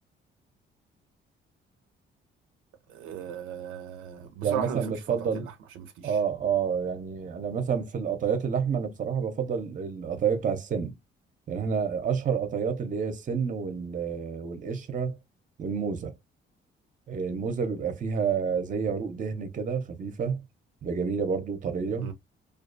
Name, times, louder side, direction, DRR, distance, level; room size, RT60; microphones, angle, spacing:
voice 1, 2.9-6.2 22.0-22.1, right 8 dB, 85° right, 0.5 m, -37 dB
voice 2, 4.4-5.5 6.0-10.9 11.5-15.2 15.6-16.1 17.1-20.4 20.8-22.1, right 6 dB, 40° right, 0.7 m, -29 dB
2.4 x 2.3 x 2.4 m
cardioid pair, 90°, 20 cm